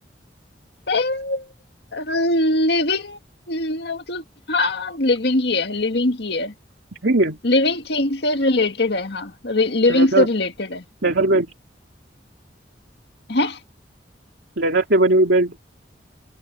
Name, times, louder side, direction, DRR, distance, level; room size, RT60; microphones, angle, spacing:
voice 1, 0.9-1.4 1.9-3.2 3.5-6.5 7.4-10.8 13.3-13.6, left 2 dB, 70° left, 2.0 m, -21 dB
voice 2, 7.0-7.4 9.9-10.3 11.0-11.5 14.6-15.6, right 2 dB, 75° right, 2.4 m, -18 dB
head